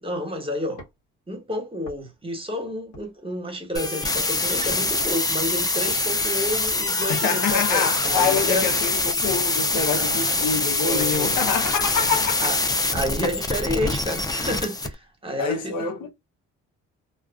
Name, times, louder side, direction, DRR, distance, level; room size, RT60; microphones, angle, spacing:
voice 1, 0.0-0.8 1.3-8.7 10.0-10.5 10.8-11.7 12.4-12.6 12.9-15.9, equal, 20° right, 1.1 m, -30 dB
sound 1, 0.8-1.0 1.8-2.2 2.9-3.2 3.6-4.0 4.7-4.9 5.9-6.1 7.0-7.4 8.0-8.2 9.1-9.2 9.9-10.1 11.0-11.2 12.0-12.2 13.0-13.1 13.8-14.0 14.8-15.1, equal, 65° left, 1.2 m, -42 dB
sound 2, 3.8-14.9, left 2 dB, 15° left, 0.4 m, -24 dB
voice 2, 7.1-12.5 15.4-16.1, left 6 dB, 85° left, 0.8 m, -26 dB
2.4 x 2.3 x 2.3 m
cardioid pair, 90°, 30 cm